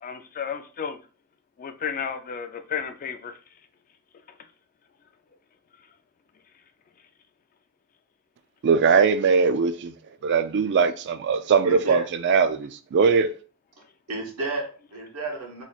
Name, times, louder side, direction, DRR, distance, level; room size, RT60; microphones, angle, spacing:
voice 1, 0.0-1.0 1.6-3.4, left 7 dB, 40° left, 0.3 m, -32 dB
voice 2, 8.6-9.9 10.2-13.3, right 5 dB, 50° right, 0.3 m, -21 dB
voice 3, 11.6-12.1 14.1-15.6, right 1 dB, 90° right, 1.3 m, -31 dB
3.1 x 2.3 x 4.0 m
head